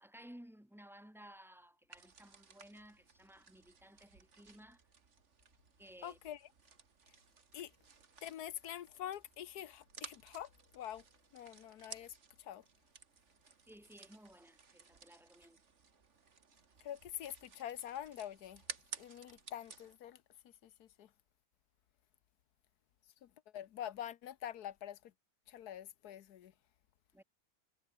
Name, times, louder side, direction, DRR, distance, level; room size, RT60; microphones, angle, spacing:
voice 1, 0.0-4.8 5.8-6.2 13.7-15.6 27.1-27.2, equal, ahead, 1.3 m, -57 dB
sound 1, 1.9-20.0, right 5 dB, 50° right, 2.1 m, -56 dB
voice 2, 6.0-6.4 7.5-7.7 8.2-11.0 11.3-12.6 16.8-18.6 19.0-20.2 20.6-21.1 23.2-25.1 25.5-26.5, left 11 dB, 75° left, 1.4 m, -46 dB
omnidirectional pair, 1.7 m